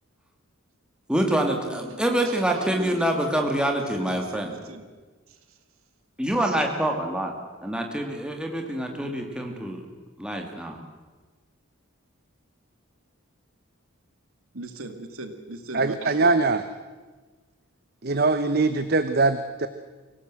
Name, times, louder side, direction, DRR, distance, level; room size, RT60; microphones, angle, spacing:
voice 1, 1.1-4.5 6.2-7.3 7.6-9.8 10.2-10.8, right 1 dB, 5° right, 2 dB, 2.4 m, -26 dB
voice 2, 1.6-3.3 3.8-4.9 14.5-16.4, right 2 dB, 85° right, 7 dB, 2.3 m, -39 dB
voice 3, 15.7-16.6 18.0-19.7, right 3 dB, 45° right, 10 dB, 0.8 m, -22 dB
25.0 x 17.0 x 7.7 m, 1.3 s
head